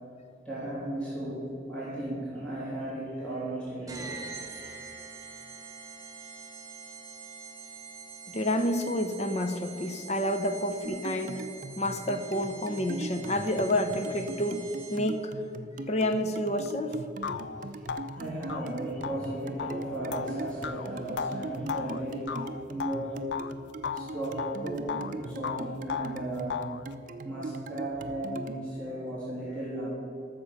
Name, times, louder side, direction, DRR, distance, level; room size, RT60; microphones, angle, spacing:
voice 1, 0.4-4.9 17.4-23.2 23.9-26.6 27.0-29.9, right 1 dB, 5° left, -10 dB, 3.3 m, -36 dB
sound 1, 3.9-15.3, right 4 dB, 20° right, 1.1 m, -45 dB
voice 2, 8.3-11.4 11.8-15.3 15.9-17.0, left 1 dB, 40° left, 7 dB, 0.8 m, -29 dB
sound 2, 10.8-28.6, right 2 dB, 45° right, 0.5 m, -41 dB
sound 3, 16.7-16.8 17.2-23.5 23.8-25.1 25.4-26.8, left 7 dB, 75° left, 0.4 m, -36 dB
13.0 x 7.0 x 6.6 m, 2.8 s
head